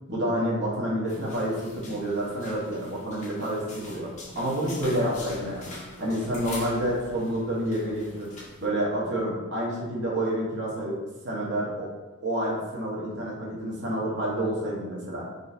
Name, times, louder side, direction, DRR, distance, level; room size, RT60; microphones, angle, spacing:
voice 1, 0.1-4.1 4.3-5.6 6.0-8.3 8.6-11.0 11.2-11.9 12.2-15.4, right 1 dB, 50° right, -5 dB, 0.9 m, -28 dB
sound 1, 1.1-8.7, left 2 dB, 35° left, 0.5 m, -44 dB
3.7 x 2.4 x 2.7 m, 1.2 s
head